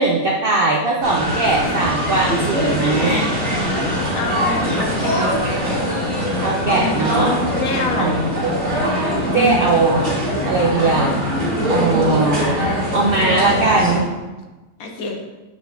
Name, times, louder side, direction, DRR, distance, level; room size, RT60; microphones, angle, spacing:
voice 1, 0.0-3.3 6.4-7.4 8.0-8.8 9.3-10.0 10.5-11.2 11.7-12.5 12.9-14.1, right 3 dB, 70° right, -1 dB, 0.5 m, -19 dB
sound 1, 1.0-14.0, equal, 40° right, 2.3 m, -21 dB
voice 2, 4.1-5.3 7.6-8.2 14.8-15.2, left 3 dB, 65° left, 2 dB, 1.2 m, -27 dB
7.9 x 5.0 x 2.6 m, 1.2 s
omnidirectional pair, 1.8 m